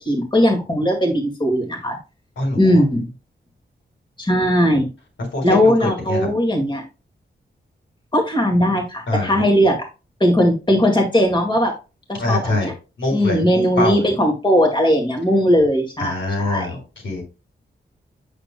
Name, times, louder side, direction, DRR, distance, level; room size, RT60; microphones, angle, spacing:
voice 1, 0.1-2.0 2.5-3.1 4.2-4.9 5.4-6.8 8.1-9.8 10.2-11.7 12.1-12.7 13.1-16.8, equal, 25° left, 2 dB, 2.1 m, -18 dB
voice 2, 5.3-6.2 9.1-9.4 12.2-12.7 13.0-13.4 13.8-14.1 16.0-16.8 17.0-17.2, left 2 dB, 80° left, 1 dB, 4.2 m, -23 dB
8.7 x 6.7 x 2.2 m, 0.30 s
wide cardioid pair, 115°, 19 cm